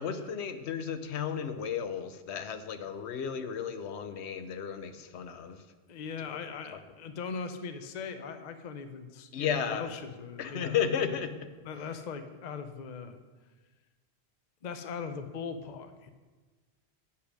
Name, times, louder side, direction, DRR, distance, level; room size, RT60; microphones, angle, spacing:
voice 1, 0.0-5.6 6.3-6.4 9.3-9.9 10.4-11.5, left 7 dB, 80° left, 10 dB, 0.9 m, -33 dB
voice 2, 5.9-10.8 11.6-13.2 14.6-16.1, left 5 dB, 50° left, 9 dB, 0.6 m, -40 dB
8.4 x 5.6 x 6.3 m, 1.3 s
omnidirectional pair, 1.1 m